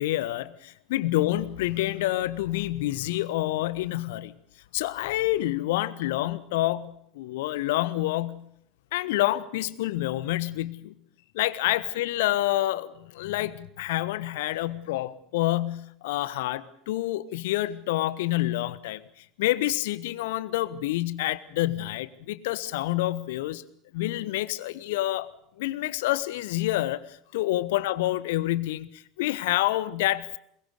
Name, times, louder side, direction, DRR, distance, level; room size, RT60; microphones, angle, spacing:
voice 1, 0.0-4.3 4.7-8.4 8.9-10.9 11.3-19.0 19.4-23.6 23.9-25.3 25.6-30.4, left 16 dB, 65° left, 17 dB, 1.2 m, -28 dB
22.5 x 22.0 x 6.6 m, 0.70 s
figure-of-eight pair, 75°, 0 cm